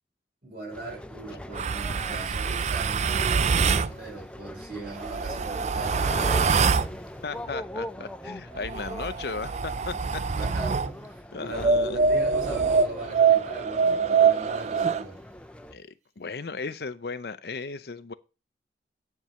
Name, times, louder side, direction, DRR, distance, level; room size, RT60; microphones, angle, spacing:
voice 1, 0.4-6.9 10.3-15.2, right 3 dB, 55° right, 5.2 m, -39 dB
sound 1, 0.7-15.7, left 1 dB, 5° left, 0.6 m, -41 dB
sound 2, 1.5-3.9 4.9-6.9 8.6-10.9 11.6-15.0, right 5 dB, 40° right, 0.4 m, -24 dB
voice 2, 7.2-10.3 11.3-12.0 15.7-18.1, left 4 dB, 60° left, 0.6 m, -36 dB
9.3 x 4.7 x 6.9 m
head